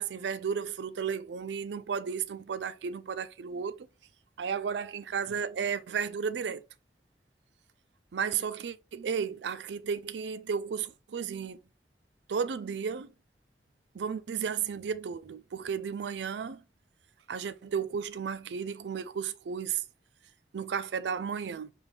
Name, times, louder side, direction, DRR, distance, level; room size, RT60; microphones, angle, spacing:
voice 1, 0.0-3.8 4.4-6.6 8.1-11.6 12.3-13.1 13.9-16.6 17.3-19.8 20.5-21.7, right 6 dB, 90° right, 0.4 m, -33 dB
5.6 x 2.6 x 3.4 m
head